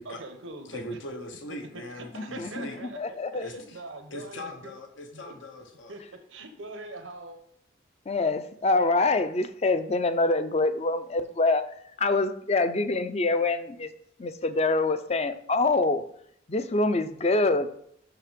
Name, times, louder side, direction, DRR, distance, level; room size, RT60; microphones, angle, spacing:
voice 1, 0.0-0.8 1.7-4.7 5.1-5.3 5.9-7.4, right 2 dB, 90° right, 5 dB, 1.1 m, -43 dB
voice 2, 0.6-2.8 3.4-3.8 4.1-6.0, left 1 dB, 80° left, 5 dB, 1.1 m, -40 dB
voice 3, 2.1-3.6 8.1-11.6 12.0-13.9 14.2-16.0 16.5-17.7, left 3 dB, 35° left, 11 dB, 0.5 m, -25 dB
6.6 x 6.0 x 5.1 m, 0.68 s
head